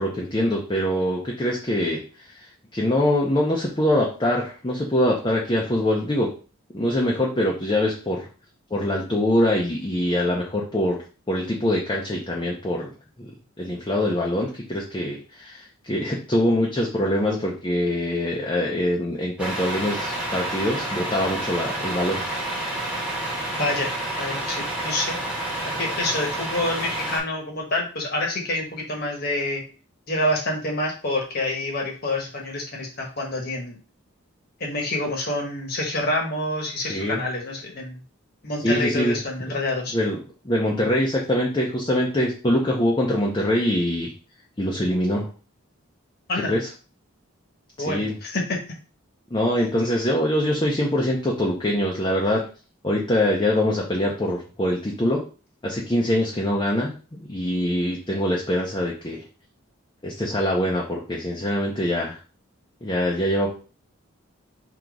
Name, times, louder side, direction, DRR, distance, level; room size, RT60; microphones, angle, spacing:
voice 1, 0.0-2.0 2.3-6.3 6.7-8.3 8.7-11.0 11.3-12.9 13.2-13.3 13.6-22.2 36.9-37.2 38.6-39.2 39.9-44.1 44.6-45.3 46.5-46.7 47.8-48.1 49.3-52.4 52.8-55.2 55.6-59.2 60.0-62.2 62.8-63.5, left 1 dB, 20° left, -2 dB, 0.6 m, -24 dB
Truck, 19.4-27.2, right 1 dB, 5° right, 1.1 m, -29 dB
voice 2, 23.5-23.9 24.2-25.1 25.8-29.6 30.1-33.8 34.6-38.0 38.4-39.9 46.3-46.5 47.8-48.4, left 1 dB, 45° left, 1 dB, 1.2 m, -27 dB
3.8 x 2.9 x 4.6 m, 0.37 s
head